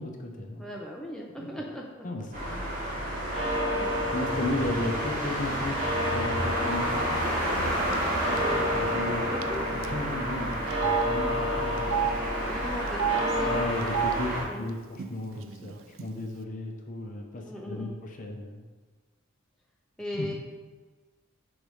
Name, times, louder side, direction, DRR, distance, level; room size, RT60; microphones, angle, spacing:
voice 1, 0.0-0.6 1.4-1.5 2.0-2.6 4.1-7.1 8.5-9.2 9.7-12.0 13.4-18.7 20.1-20.3, left 2 dB, 40° left, 2 dB, 0.7 m, -35 dB
voice 2, 0.6-2.1 3.4-3.9 8.3-8.7 9.3-9.6 12.5-13.5 14.4-14.7 17.5-18.0 20.0-20.3, left 1 dB, 5° left, -2 dB, 0.4 m, -38 dB
sound 1, 2.3-14.4, right 1 dB, 40° right, 1.7 m, -30 dB
sound 2, 2.9-13.6, left 1 dB, 25° right, 1.8 m, -32 dB
Telephone, 7.9-8.1 8.4-8.5 9.4-9.6 9.8-9.9 10.7-11.0 11.8-12.1 12.9-13.2 13.8-14.1 15.0-15.1 15.3-16.0, right 10 dB, 65° right, 0.4 m, -29 dB
4.8 x 4.0 x 4.9 m, 1.3 s
head